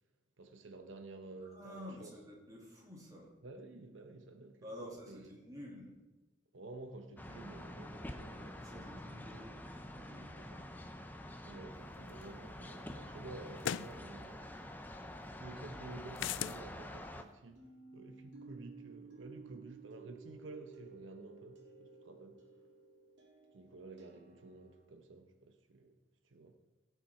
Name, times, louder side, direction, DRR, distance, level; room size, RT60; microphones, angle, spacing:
voice 1, 0.4-2.1 3.4-5.3 6.5-8.9 10.3-10.6 11.4-14.4 15.4-17.6 17.9-22.4 23.5-25.9 26.2-26.6, right 2 dB, 85° right, 0.9 m, -51 dB
voice 2, 1.4-3.3 4.6-5.9 8.3-9.6 9.9-10.7, left 1 dB, 20° right, 2.6 m, -51 dB
sound 1, 7.2-17.2, left 1 dB, 10° left, 0.7 m, -47 dB
sound 2, 12.2-12.3 13.6-13.9 16.2-16.6, left 10 dB, 75° left, 0.3 m, -36 dB
sound 3, 17.6-24.9, right 5 dB, 65° right, 2.0 m, -56 dB
16.5 x 6.7 x 4.3 m
head